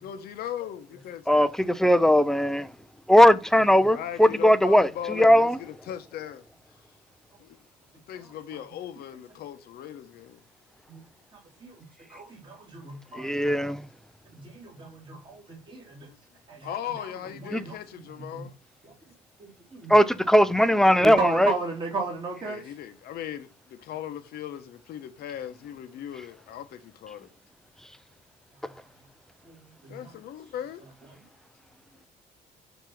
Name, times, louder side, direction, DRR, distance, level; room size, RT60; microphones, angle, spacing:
voice 1, 0.0-1.5 3.9-6.5 7.4-7.6 8.1-10.4 16.0-16.2 16.6-18.5 22.5-27.3 29.9-30.8, left 10 dB, 70° left, 0.8 m, -38 dB
voice 2, 1.3-2.7 3.1-5.6 13.2-13.8 17.5-17.6 19.9-21.5, equal, 5° left, 0.4 m, -19 dB
voice 3, 12.1-13.5 14.3-16.1 16.5-16.7 17.6-17.7 18.2-18.4 18.8-18.9 19.4-19.9 21.0-22.6 29.5-30.1, right 3 dB, 30° right, 2.0 m, -34 dB
7.0 x 2.8 x 5.9 m
cardioid pair, 110°, 17 cm